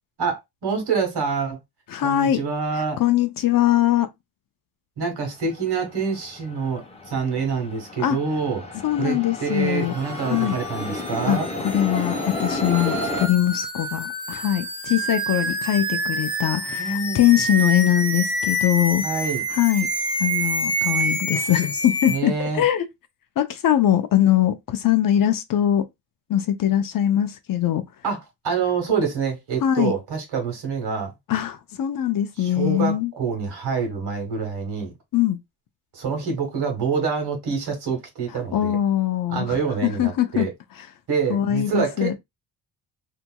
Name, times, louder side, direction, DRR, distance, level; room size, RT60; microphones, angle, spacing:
voice 1, 0.2-1.6 2.0-3.0 5.0-11.5 16.8-17.3 19.0-19.4 22.1-22.6 28.0-31.1 32.4-34.9 35.9-38.8 39.3-40.5 41.1-42.2, right 5 dB, 65° right, 1.5 m, -26 dB
voice 2, 1.9-2.4 3.0-4.1 8.0-8.2 8.8-9.9 10.3-10.6 11.3-11.4 11.6-19.0 19.5-19.9 20.2-22.9 23.4-25.9 26.3-27.8 29.6-29.9 31.3-33.1 35.1-35.4 38.5-39.6 39.8-40.5 41.3-42.1, left 12 dB, 50° left, 0.6 m, -21 dB
sound 1, 5.5-5.6 5.9-13.3, left 2 dB, 15° left, 0.8 m, -31 dB
sound 2, 9.9-22.2, right 1 dB, 10° right, 1.2 m, -28 dB
2.8 x 2.7 x 2.2 m
supercardioid pair, 65°, 42 cm